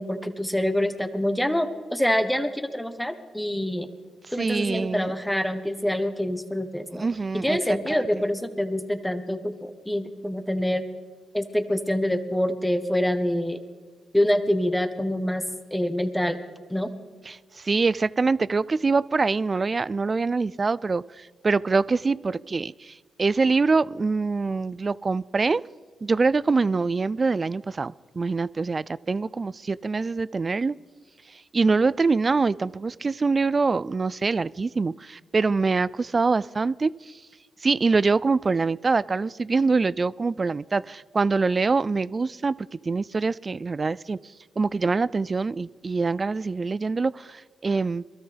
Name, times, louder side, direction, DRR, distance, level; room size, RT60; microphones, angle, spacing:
voice 1, 0.0-3.9 4.3-7.1 7.3-10.8 11.3-13.6 14.1-15.4 15.7-16.4 16.7-16.9, left 1 dB, 5° left, 1.3 m, -26 dB
voice 2, 4.4-5.1 7.0-7.6 7.9-8.0 17.3-25.6 26.0-30.8 31.5-37.1 37.6-44.2 44.6-48.1, right 4 dB, 40° right, 0.3 m, -24 dB
22.5 x 13.0 x 3.4 m
supercardioid pair, 45°, 0 cm